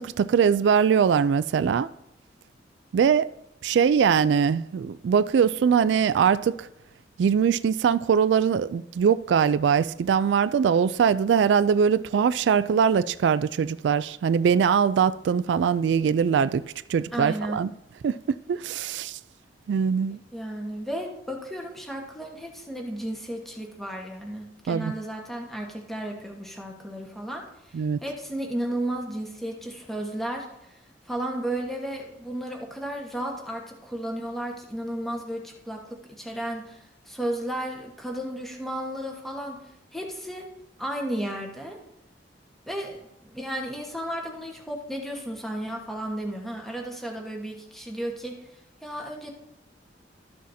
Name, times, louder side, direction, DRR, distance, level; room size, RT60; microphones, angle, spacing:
voice 1, 0.0-1.9 2.9-3.3 3.6-6.7 7.2-16.6 16.9-17.7 18.0-19.2 19.7-20.2 24.7-24.9 27.7-28.0, right 7 dB, 75° right, 0.3 m, -22 dB
voice 2, 17.1-17.6 20.1-27.4 28.0-30.5 31.1-35.8 36.2-39.6 39.9-40.5 40.8-41.8 42.7-48.3 48.8-49.3, right 1 dB, ahead, 1.3 m, -33 dB
13.0 x 6.3 x 2.7 m
head